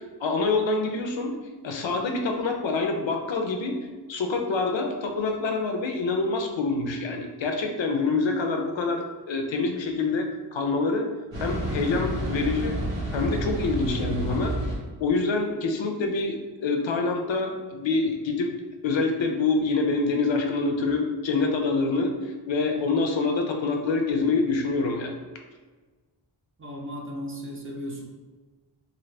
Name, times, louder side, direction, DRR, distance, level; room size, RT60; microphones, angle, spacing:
voice 1, 0.0-1.3 1.6-3.8 4.1-11.1 11.4-12.7 13.1-14.6 15.0-18.5 18.8-25.2, left 3 dB, 80° left, 3 dB, 0.6 m, -26 dB
sound 1, 11.3-14.8, right 1 dB, 80° right, 1.2 m, -30 dB
voice 2, 26.6-28.0, equal, 30° right, -1 dB, 0.5 m, -35 dB
2.7 x 2.6 x 3.2 m, 1.3 s
wide cardioid pair, 85°, 44 cm